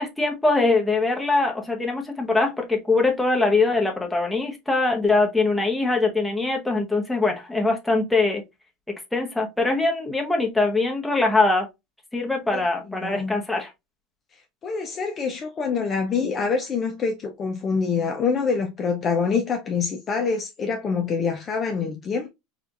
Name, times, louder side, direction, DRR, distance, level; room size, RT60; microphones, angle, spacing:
voice 1, 0.0-8.4 9.1-11.7 12.1-13.7, left 3 dB, 5° left, 0.9 m, -22 dB
voice 2, 12.9-13.4 14.6-22.3, left 5 dB, 30° left, 0.5 m, -25 dB
4.3 x 2.4 x 2.5 m
supercardioid pair, 120°, 0 cm